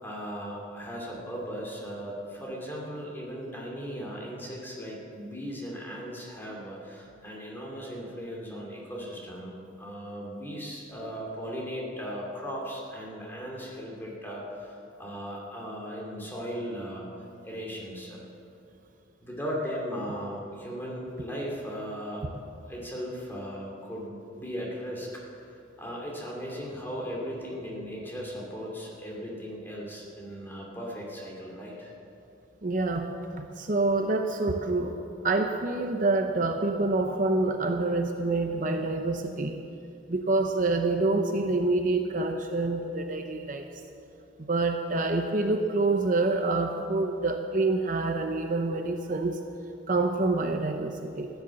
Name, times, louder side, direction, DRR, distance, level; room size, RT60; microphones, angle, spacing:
voice 1, 0.0-9.5 9.8-17.1 17.4-18.2 19.2-22.2 22.7-25.1 25.8-31.9, equal, 10° left, -3 dB, 2.6 m, -37 dB
voice 2, 32.6-34.9 35.2-39.6 40.1-43.7 44.5-49.4 49.9-51.3, right 2 dB, 45° right, 4 dB, 0.7 m, -27 dB
14.5 x 10.5 x 7.0 m, 2.7 s
head